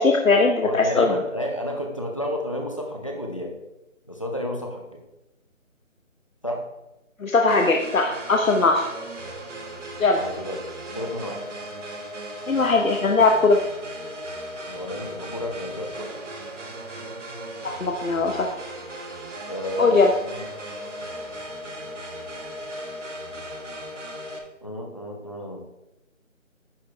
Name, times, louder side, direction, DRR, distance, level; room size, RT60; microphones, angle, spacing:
voice 1, 0.0-1.1 7.2-8.8 10.0-10.2 12.5-13.6 17.6-18.5 19.8-20.1, left 3 dB, 80° left, 3 dB, 1.1 m, -19 dB
voice 2, 0.6-3.5 4.1-5.0 6.4-6.6 10.2-10.6 10.9-11.4 14.7-16.1 19.5-20.0 20.2-20.8 24.6-25.6, left 1 dB, 25° left, 2 dB, 0.8 m, -31 dB
sound 1, 7.5-24.4, right 1 dB, 60° right, 1.5 m, -37 dB
10.0 x 6.3 x 3.4 m, 0.97 s
figure-of-eight pair, 175°, 40 cm